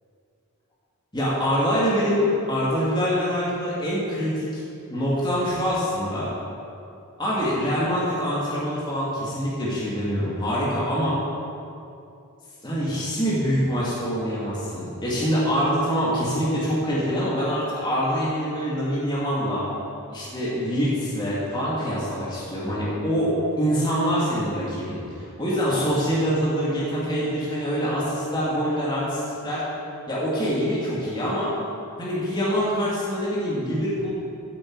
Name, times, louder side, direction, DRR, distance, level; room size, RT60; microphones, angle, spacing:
voice 1, 1.1-4.6 4.9-6.3 7.2-11.2 12.6-19.7 20.1-23.3 23.6-29.6 30.1-31.5 32.0-34.1, equal, 20° left, -8 dB, 2.7 m, -25 dB
15.0 x 8.6 x 4.9 m, 2.6 s
head